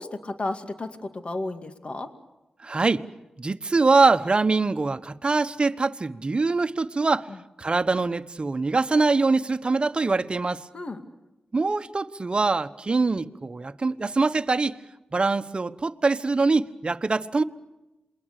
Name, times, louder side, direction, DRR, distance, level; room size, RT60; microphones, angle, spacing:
voice 1, 0.0-2.1 7.3-7.4 10.7-11.0, left 2 dB, 50° left, 7 dB, 2.3 m, -33 dB
voice 2, 2.6-3.0 3.4-7.3 7.6-10.7 11.5-14.8 15.1-17.4, right 3 dB, 40° right, 10 dB, 1.1 m, -23 dB
28.0 x 22.0 x 6.7 m, 0.99 s
supercardioid pair, 40°, 3 cm